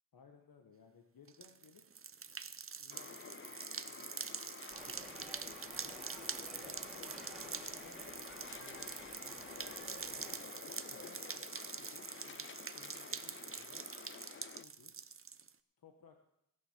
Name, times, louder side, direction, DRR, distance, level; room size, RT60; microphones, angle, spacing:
voice 1, 0.1-1.9 2.8-3.3 3.9-6.0 6.5-8.0 8.6-13.9 14.6-15.0 15.8-16.2, left 5 dB, 70° left, 3 dB, 1.3 m, -62 dB
sound 1, 1.3-15.5, right 6 dB, 35° right, 0.6 m, -45 dB
sound 2, 2.9-14.6, left 7 dB, 35° left, 0.5 m, -51 dB
sound 3, 4.7-10.4, equal, ahead, 2.3 m, -54 dB
18.5 x 6.5 x 5.9 m, 0.80 s
cardioid pair, 70°, 37 cm